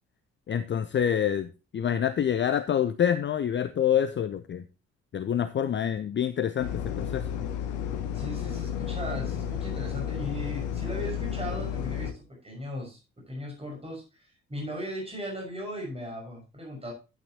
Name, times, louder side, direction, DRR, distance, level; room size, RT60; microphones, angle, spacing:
voice 1, 0.5-4.6 5.1-7.2, left 9 dB, 30° left, 12 dB, 0.7 m, -27 dB
sound 1, 6.6-12.1, left 8 dB, 70° left, 1.1 m, -32 dB
voice 2, 8.1-16.9, equal, 15° right, 0 dB, 5.9 m, -37 dB
11.5 x 9.1 x 2.9 m, 0.30 s
figure-of-eight pair, 45°, 35 cm